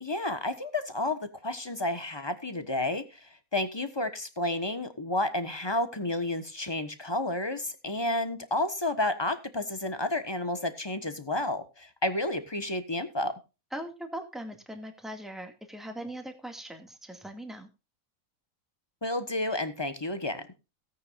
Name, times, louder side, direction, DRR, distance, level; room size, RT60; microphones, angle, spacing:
voice 1, 0.0-13.3 19.0-20.5, left 1 dB, 20° left, 10 dB, 1.3 m, -31 dB
voice 2, 13.7-17.7, right 1 dB, ahead, 5 dB, 2.0 m, -40 dB
17.0 x 9.4 x 2.5 m, 0.29 s
omnidirectional pair, 1.5 m